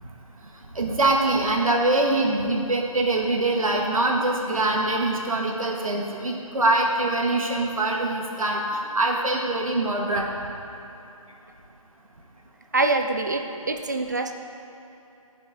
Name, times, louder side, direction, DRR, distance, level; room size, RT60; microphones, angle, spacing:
voice 1, 0.7-10.3, right 2 dB, 70° right, 0 dB, 1.7 m, -23 dB
voice 2, 12.7-14.3, right 2 dB, 30° right, 5 dB, 0.5 m, -25 dB
13.0 x 5.6 x 4.8 m, 2.8 s
figure-of-eight pair, 165°, 18 cm